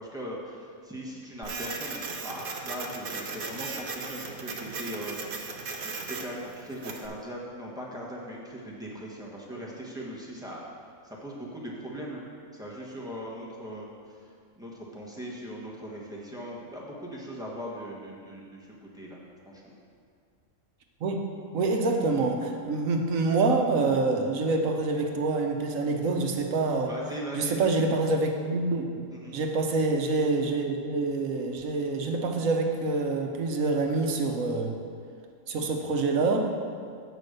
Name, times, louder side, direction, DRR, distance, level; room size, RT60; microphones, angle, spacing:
voice 1, 0.0-5.5 5.8-10.6 11.0-12.2 12.5-14.2 14.6-19.2 19.4-19.8 26.8-27.6 29.1-29.4, equal, 5° right, -5 dB, 1.2 m, -39 dB
Printer, 1.4-7.1, right 4 dB, 50° right, 0.8 m, -37 dB
voice 2, 21.5-26.9 27.3-29.0 29.3-34.7 35.5-36.5, right 3 dB, 75° right, 3 dB, 1.2 m, -26 dB
8.1 x 5.2 x 6.6 m, 2.2 s
omnidirectional pair, 1.4 m